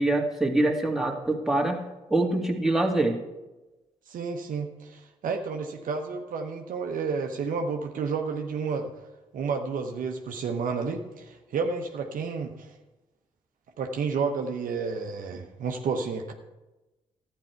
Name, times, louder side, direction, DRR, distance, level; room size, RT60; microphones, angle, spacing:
voice 1, 0.0-1.8 2.1-3.2, right 2 dB, 5° right, 1 dB, 2.0 m, -24 dB
voice 2, 4.1-8.9 9.3-12.7 13.8-16.3, right 5 dB, 65° right, 4 dB, 0.9 m, -31 dB
12.0 x 9.2 x 4.6 m, 1.1 s
hypercardioid pair, 45°, 15 cm